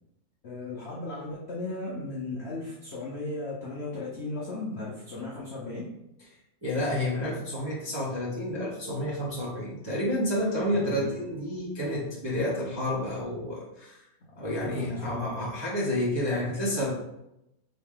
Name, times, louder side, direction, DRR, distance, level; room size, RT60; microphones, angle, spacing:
voice 1, 0.4-5.9 10.7-11.1 14.2-15.5, left 2 dB, 80° left, -5 dB, 0.5 m, -36 dB
voice 2, 6.6-14.0 14.4-16.9, left 1 dB, 30° right, -7 dB, 0.4 m, -30 dB
3.8 x 3.2 x 3.5 m, 0.86 s
omnidirectional pair, 2.1 m